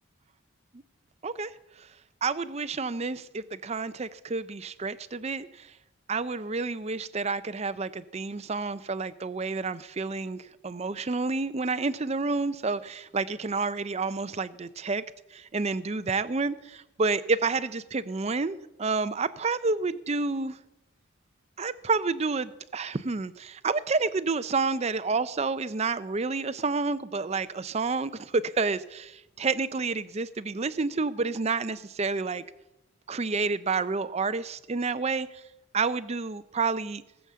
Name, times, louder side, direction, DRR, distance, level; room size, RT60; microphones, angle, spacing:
voice 1, 2.2-5.7 6.1-15.0 15.3-20.6 21.6-32.4 33.1-35.3 35.7-37.0, right 4 dB, 30° right, 15 dB, 0.5 m, -29 dB
18.0 x 7.1 x 7.4 m, 0.94 s
head